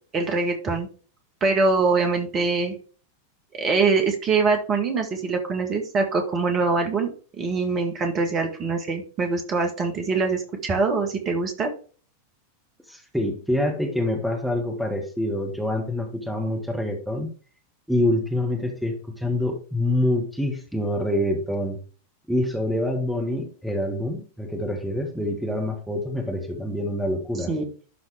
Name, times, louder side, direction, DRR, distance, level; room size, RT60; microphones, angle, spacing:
voice 1, 0.1-0.9 1.4-2.8 3.5-11.7 27.5-27.6, right 4 dB, 30° right, 4 dB, 1.8 m, -23 dB
voice 2, 12.9-17.3 17.9-21.8 22.3-27.5, left 1 dB, ahead, 2 dB, 1.9 m, -26 dB
12.0 x 4.0 x 3.5 m, 0.38 s
figure-of-eight pair, 90°, 0 cm